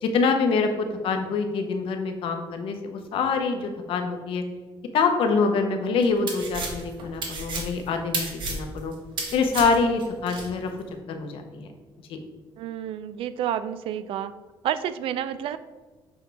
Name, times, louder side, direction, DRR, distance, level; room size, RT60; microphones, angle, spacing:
voice 1, 0.0-4.4 4.9-8.9 9.3-10.7 11.1-11.7 12.1-12.2, left 4 dB, 80° left, 5 dB, 0.8 m, -25 dB
sound 1, 6.0-10.5, right 3 dB, 60° right, 1.3 m, -32 dB
voice 2, 12.6-14.4 14.6-15.6, right 10 dB, 80° right, 13 dB, 0.4 m, -29 dB
7.2 x 4.5 x 3.4 m, 1.3 s
cardioid pair, 150°, 9 cm